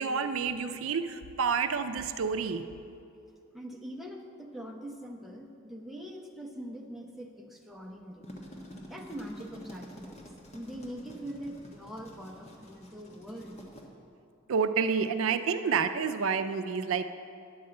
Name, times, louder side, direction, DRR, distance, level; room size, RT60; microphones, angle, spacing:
voice 1, 0.0-2.6 14.5-17.0, right 6 dB, 80° right, 10 dB, 0.5 m, -29 dB
voice 2, 3.5-8.3 8.9-13.6, equal, ahead, 0 dB, 0.8 m, -43 dB
sound 1, 8.0-13.8, equal, 35° left, 1.2 m, -49 dB
10.0 x 5.5 x 7.7 m, 2.5 s
head